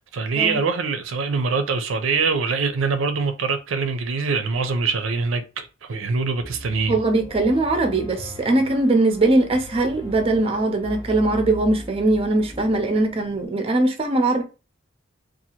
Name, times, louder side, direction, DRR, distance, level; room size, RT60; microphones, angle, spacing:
voice 1, 0.1-7.0, right 4 dB, 85° right, 0.5 m, -24 dB
Piano, 6.4-13.5, equal, 20° left, 0.5 m, -39 dB
voice 2, 6.9-14.4, right 2 dB, 30° right, 0.5 m, -21 dB
2.7 x 2.4 x 2.8 m
head